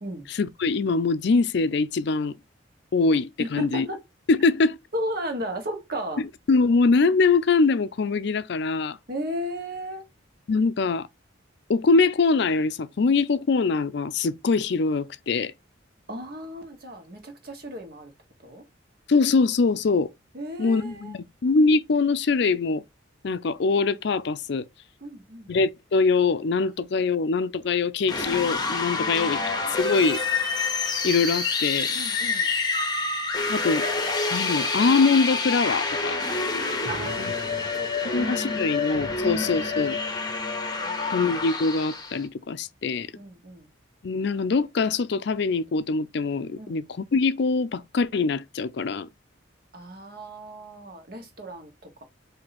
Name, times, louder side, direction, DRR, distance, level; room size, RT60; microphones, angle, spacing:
voice 1, 0.4-2.4 2.9-3.9 4.3-4.8 6.5-9.0 10.5-11.1 11.7-15.5 19.1-20.1 20.6-22.8 23.2-24.7 25.5-29.4 29.8-30.2 31.0-31.9 33.5-33.9 34.3-36.2 37.2-37.3 38.1-40.0 41.1-43.2 44.0-49.1, left 4 dB, 60° left, 0.4 m, -23 dB
voice 2, 3.4-4.0 4.9-6.2 9.1-10.1 16.1-18.1 18.4-18.7 20.3-21.2 25.0-25.5 28.9-29.8 31.9-32.5 36.9-38.8 39.1-39.6 40.8-41.2 43.2-43.7 46.6-46.8 49.7-52.0, equal, 50° right, 1.3 m, -35 dB
sound 1, 28.0-42.2, left 4 dB, 20° left, 0.9 m, -27 dB
4.5 x 2.8 x 4.1 m
head